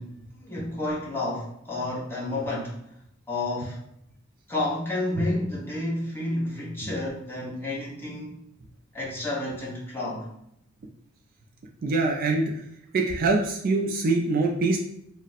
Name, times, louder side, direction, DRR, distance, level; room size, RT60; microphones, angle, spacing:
voice 1, 0.0-2.9 3.3-3.8 4.5-8.5 8.9-10.3, left 1 dB, 10° left, -6 dB, 0.8 m, -31 dB
voice 2, 11.8-12.5 12.9-14.8, right 3 dB, 45° right, 2 dB, 0.3 m, -24 dB
2.4 x 2.1 x 3.9 m, 0.75 s
head